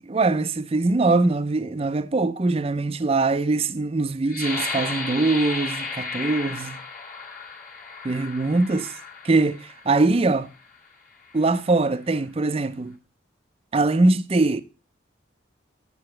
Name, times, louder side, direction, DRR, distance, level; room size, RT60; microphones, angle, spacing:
voice 1, 0.0-6.8 8.0-8.9 9.2-10.5 11.3-13.0 13.7-14.6, right 3 dB, 30° right, 0.4 m, -22 dB
sound 1, 4.3-9.9 10.6-10.8 11.2-11.7, left 3 dB, 40° left, 1.6 m, -34 dB
9.6 x 6.9 x 3.2 m
head